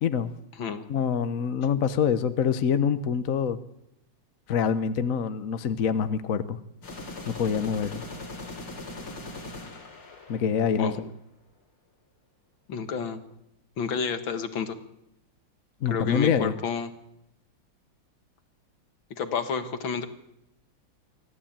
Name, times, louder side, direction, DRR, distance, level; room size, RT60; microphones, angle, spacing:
voice 1, 0.0-0.3 0.9-3.6 4.5-6.6 7.3-8.0 10.3-10.9 15.8-16.5, left 7 dB, 50° left, 12 dB, 1.1 m, -25 dB
sound 1, 6.8-10.9, left 2 dB, 85° left, 4.4 m, -40 dB
voice 2, 12.7-13.2 13.8-14.8 15.9-16.9 19.1-20.1, left 6 dB, 70° left, 9 dB, 2.3 m, -30 dB
24.0 x 15.0 x 8.8 m, 0.82 s
omnidirectional pair, 2.3 m